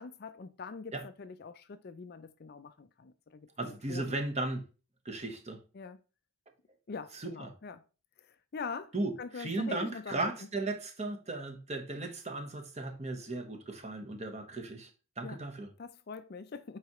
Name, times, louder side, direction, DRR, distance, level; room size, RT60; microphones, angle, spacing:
voice 1, 0.0-4.2 5.7-6.0 6.9-7.8 8.3-10.3 15.2-15.4 15.8-16.8, left 5 dB, 45° left, 0.4 m, -44 dB
voice 2, 3.6-4.6 5.0-5.6 7.1-7.5 8.9-14.9 15.2-15.7, right 2 dB, 30° right, 1.1 m, -36 dB
8.1 x 4.8 x 3.0 m
head